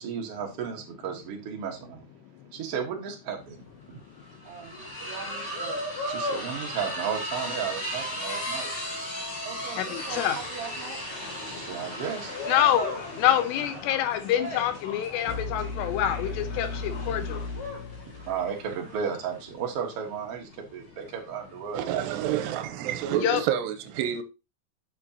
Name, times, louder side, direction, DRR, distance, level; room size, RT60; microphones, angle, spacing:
voice 1, 0.0-2.0 2.5-3.6 3.9-4.0 4.4-8.7 9.4-11.0 11.6-12.3 18.0-22.0, right 7 dB, 60° right, 1.6 m, -35 dB
sound 1, 3.3-3.4 3.7-22.5, equal, 30° left, 2.5 m, -36 dB
voice 2, 9.7-10.4 12.5-17.4 23.2-23.4, left 11 dB, 90° left, 3.1 m, -26 dB
sound 2, 12.2-17.5, left 4 dB, 55° left, 1.8 m, -44 dB
sound 3, 15.3-19.2, left 3 dB, 75° left, 3.1 m, -36 dB
voice 3, 21.7-24.2, right 10 dB, 90° right, 2.8 m, -28 dB
9.1 x 6.3 x 2.8 m
omnidirectional pair, 4.8 m